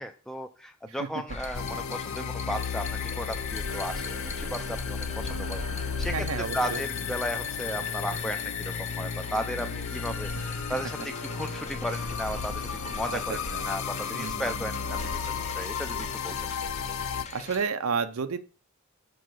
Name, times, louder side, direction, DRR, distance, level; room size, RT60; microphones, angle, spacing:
voice 1, 0.0-16.4, equal, ahead, 6 dB, 0.4 m, -35 dB
voice 2, 0.9-1.2 6.1-6.8 10.4-10.5 13.1-13.7 14.1-15.2 17.3-18.4, right 5 dB, 70° right, 10 dB, 0.5 m, -33 dB
sound 1, 1.3-17.6, left 3 dB, 30° left, 0.7 m, -40 dB
sound 2, 1.5-17.3, left 7 dB, 65° left, 0.6 m, -34 dB
sound 3, 3.7-15.7, right 4 dB, 90° right, 1.0 m, -47 dB
6.9 x 4.7 x 6.2 m, 0.40 s
head